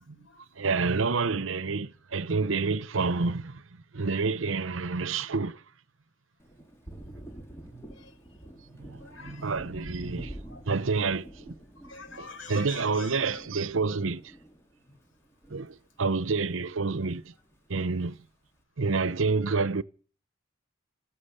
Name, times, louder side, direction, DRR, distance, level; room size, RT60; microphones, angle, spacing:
voice 1, 0.0-0.7 4.1-4.3 7.3-7.4 7.9-8.5 9.0-9.7 10.5-10.6 11.8-13.4 14.9-15.0 15.5-15.6, left 4 dB, 75° left, 4.5 m, -48 dB
voice 2, 0.6-3.6 3.9-5.6 8.8-10.3 10.7-11.5 12.2-14.2 15.5-17.3 17.7-18.2 18.8-19.8, right 4 dB, 80° right, 0.8 m, -28 dB
Thunder, 6.4-16.2 16.5-17.6, right 1 dB, 15° left, 2.7 m, -47 dB
15.5 x 14.0 x 6.7 m
head